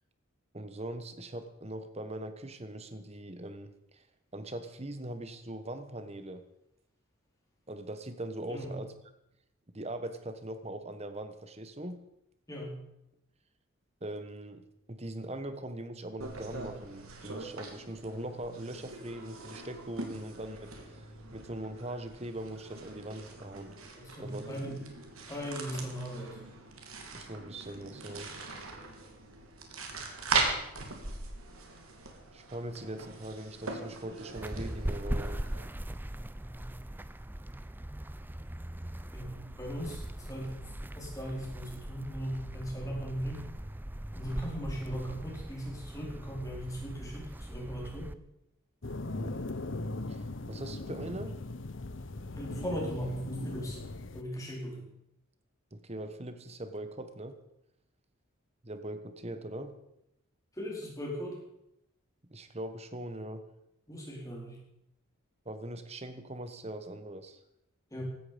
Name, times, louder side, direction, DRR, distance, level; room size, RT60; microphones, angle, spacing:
voice 1, 0.5-4.0 4.3-6.4 7.7-8.9 9.7-12.0 14.0-23.8 24.2-24.6 27.1-28.3 32.3-35.4 49.1-49.5 50.1-51.3 55.7-57.4 58.6-59.8 62.3-63.4 65.4-67.4, right 1 dB, 30° right, 9 dB, 1.3 m, -41 dB
voice 2, 12.5-12.8 23.9-24.8 25.3-26.4 39.1-40.6 40.9-43.4 44.1-48.1 52.3-53.8 54.1-54.9 60.6-61.4 63.9-64.6 67.9-68.0, equal, 15° left, -2 dB, 4.5 m, -38 dB
sound 1, 16.2-35.7, right 3 dB, 85° right, 2.8 m, -40 dB
sound 2, 34.3-48.1, right 1 dB, 10° right, 0.5 m, -40 dB
sound 3, 48.8-54.2, left 2 dB, 60° left, 1.0 m, -39 dB
16.5 x 13.0 x 5.2 m, 0.82 s
head